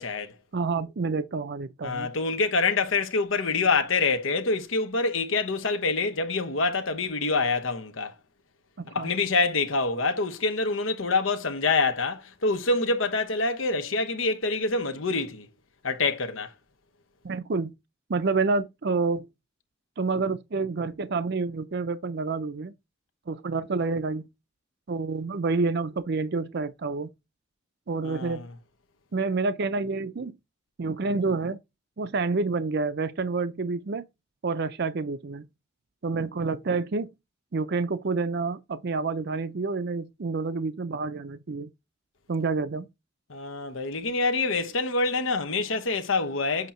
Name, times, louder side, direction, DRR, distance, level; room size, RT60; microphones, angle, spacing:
voice 1, 0.0-0.4 1.8-8.1 8.9-15.5 15.8-16.5 28.0-28.5 43.3-46.7, left 3 dB, 80° left, 1.0 m, -26 dB
voice 2, 0.5-2.1 8.8-9.1 17.2-17.7 18.1-19.3 20.0-22.7 23.3-24.3 24.9-27.1 27.9-28.5 29.1-30.3 30.8-31.6 32.0-34.0 34.4-35.5 36.0-37.1 37.5-41.7 42.3-42.9, right 4 dB, 55° right, 0.5 m, -28 dB
8.0 x 2.8 x 4.3 m
head